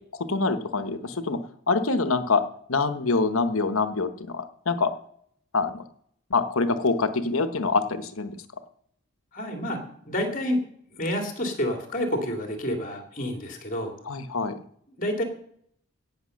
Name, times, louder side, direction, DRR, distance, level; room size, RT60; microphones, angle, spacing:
voice 1, 0.3-2.4 2.7-4.9 5.5-5.8 6.3-8.4 14.1-14.6, left 4 dB, 80° left, 10 dB, 1.2 m, -25 dB
voice 2, 9.3-9.8 10.0-10.6 10.9-13.9 15.0-15.2, left 1 dB, 40° left, 4 dB, 2.8 m, -28 dB
17.0 x 6.8 x 6.5 m, 0.65 s
head